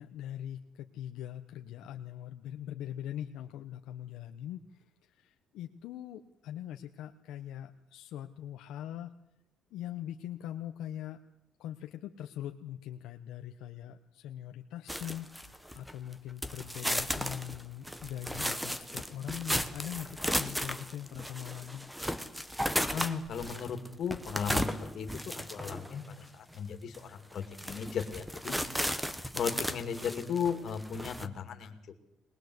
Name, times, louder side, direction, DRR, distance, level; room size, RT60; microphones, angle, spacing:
voice 1, 0.0-9.1 9.7-11.2 11.6-21.9 29.5-29.6, left 11 dB, 70° left, 5 dB, 1.1 m, -42 dB
sound 1, 14.9-16.1 16.4-26.0 26.5-26.6 26.9-27.0 27.4-31.3, equal, ahead, 0.9 m, -35 dB
voice 2, 22.9-28.5 29.4-31.7, left 7 dB, 40° left, 5 dB, 2.5 m, -36 dB
22.5 x 20.0 x 8.0 m, 0.81 s
cardioid pair, 165°, 0 cm